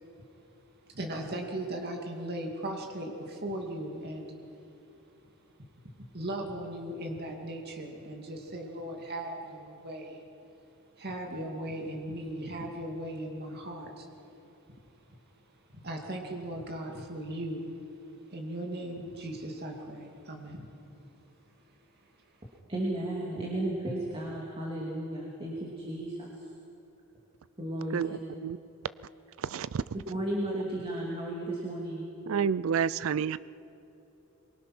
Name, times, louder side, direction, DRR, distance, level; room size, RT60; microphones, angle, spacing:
voice 1, 0.9-4.3 6.1-10.2 11.0-14.1 15.7-17.7 18.3-20.7, right 1 dB, 45° right, 1 dB, 2.4 m, -38 dB
voice 2, 22.7-26.3 27.6-28.2 30.1-32.1, right 1 dB, 25° right, -3 dB, 2.6 m, -34 dB
voice 3, 29.4-29.8 32.3-33.4, right 7 dB, 65° right, 18 dB, 0.4 m, -29 dB
23.5 x 23.5 x 6.1 m, 3.0 s
head